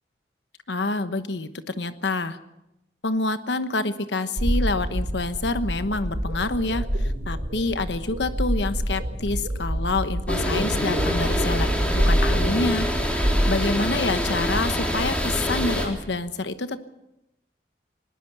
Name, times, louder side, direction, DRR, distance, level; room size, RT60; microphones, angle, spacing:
voice 1, 0.7-2.4 3.0-11.7 11.9-16.8, left 3 dB, 85° left, 11 dB, 1.1 m, -27 dB
sound 1, 4.4-14.5, equal, 80° right, 3.2 m, -27 dB
sound 2, 10.3-15.9, equal, 5° left, 3.5 m, -25 dB
21.0 x 19.0 x 6.9 m, 0.88 s
head